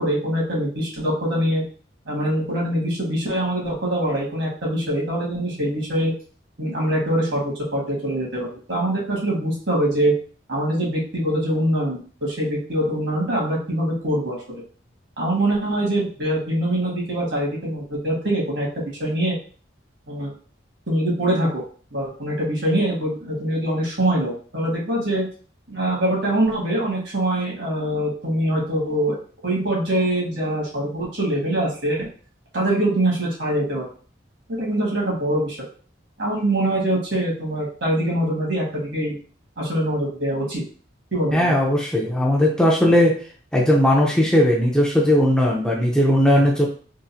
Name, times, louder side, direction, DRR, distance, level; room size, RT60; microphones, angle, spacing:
voice 1, 0.0-1.6 2.0-6.1 6.6-10.1 10.5-14.6 15.2-19.3 20.1-20.3 20.9-21.6 21.9-25.2 25.7-29.1 29.4-32.1 32.5-33.9 34.5-35.6 36.2-39.2 39.6-40.6 41.1-41.6, right 1 dB, 70° right, -4 dB, 1.7 m, -23 dB
voice 2, 41.3-43.1 43.5-46.7, left 1 dB, 5° left, -3 dB, 0.5 m, -18 dB
3.7 x 2.5 x 2.7 m, 0.41 s
head